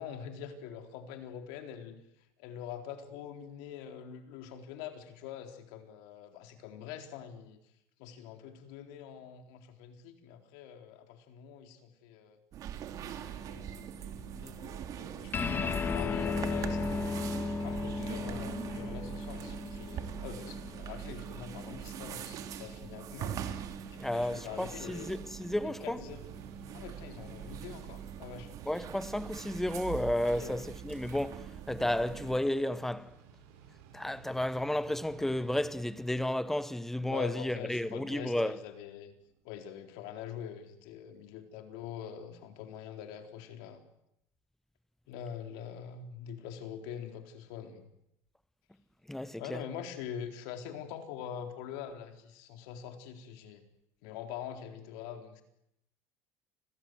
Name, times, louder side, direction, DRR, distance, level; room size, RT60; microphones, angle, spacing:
voice 1, 0.0-2.0 2.4-7.6 8.0-12.4 13.0-17.2 17.6-23.4 23.9-25.1 25.5-26.2 26.7-28.5 30.3-30.6 37.1-39.1 39.4-43.8 45.1-47.8 49.4-53.7 54.0-55.4, left 8 dB, 75° left, 4.1 m, -44 dB
sound 1, 12.5-32.4, right 9 dB, 45° right, 2.9 m, -43 dB
sound 2, 15.3-22.1, left 4 dB, 25° left, 2.6 m, -35 dB
voice 2, 24.0-26.0 28.7-33.1 33.9-38.6 49.1-49.6, left 1 dB, 5° left, 1.0 m, -32 dB
Mechanical fan, 26.0-39.4, right 7 dB, 80° right, 7.5 m, -55 dB
29.5 x 22.5 x 7.9 m
cardioid pair, 140°, 8 cm